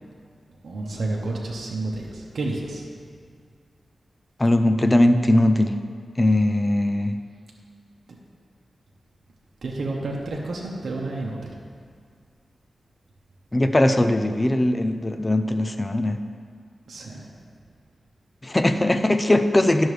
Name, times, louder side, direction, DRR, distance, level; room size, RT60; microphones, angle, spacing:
voice 1, 0.6-2.8 9.6-11.5 16.9-17.2, right 2 dB, 70° right, -2 dB, 0.9 m, -30 dB
voice 2, 4.4-5.7 6.2-7.2 13.5-16.2 18.4-19.9, left 1 dB, 20° left, 8 dB, 0.4 m, -20 dB
10.5 x 6.3 x 3.2 m, 2.1 s
wide cardioid pair, 100°, 0 cm